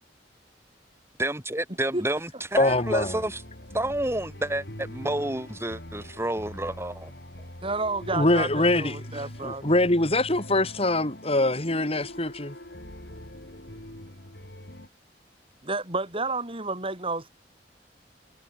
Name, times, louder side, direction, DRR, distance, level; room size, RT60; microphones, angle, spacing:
voice 1, 1.2-3.4 3.7-7.1, right 1 dB, 15° right, 4.0 m, -29 dB
sound 1, 2.6-14.9, left 1 dB, 65° left, 5.6 m, -42 dB
voice 2, 2.6-3.2 8.1-12.5, left 2 dB, 35° left, 3.7 m, -24 dB
voice 3, 7.6-9.7 15.6-17.3, right 3 dB, 30° right, 6.1 m, -30 dB
head